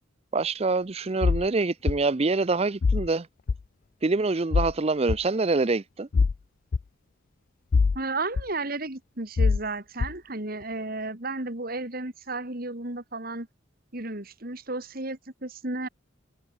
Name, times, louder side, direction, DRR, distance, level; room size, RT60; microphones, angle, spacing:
voice 1, 0.3-3.3 4.0-6.1, right 3 dB, 30° right, 0.5 m, -25 dB
sound 1, 1.2-1.5 1.9-2.0 2.8-3.1 3.5-3.6 4.5-4.7 5.1-5.2 6.1-6.4 6.7-6.8 7.7-8.0 8.4-8.5 9.4-9.6 10.0-10.1, left 4 dB, 45° left, 0.3 m, -22 dB
voice 2, 7.9-13.5 13.9-15.9, right 2 dB, 50° right, 2.8 m, -33 dB
head